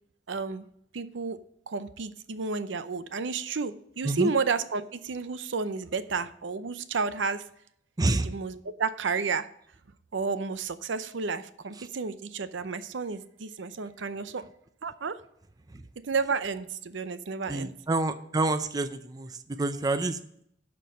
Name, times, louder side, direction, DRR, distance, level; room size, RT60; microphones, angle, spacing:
voice 1, 0.3-0.6 0.9-1.4 1.7-7.4 8.2-9.5 10.1-14.4 14.8-15.2 16.0-17.7, right 4 dB, 80° right, 13 dB, 0.6 m, -31 dB
voice 2, 17.5-20.2, right 2 dB, 20° right, 11 dB, 0.5 m, -28 dB
12.0 x 4.5 x 6.3 m, 0.71 s
head